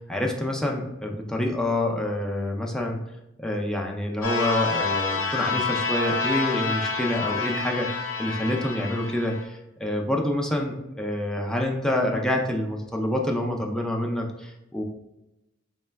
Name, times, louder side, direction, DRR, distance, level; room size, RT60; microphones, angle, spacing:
voice 1, 0.1-3.0 3.4-14.8, left 1 dB, 5° left, 0 dB, 0.4 m, -27 dB
sound 1, 4.2-9.4, left 4 dB, 75° left, 0.7 m, -28 dB
4.7 x 2.1 x 3.3 m, 0.92 s
head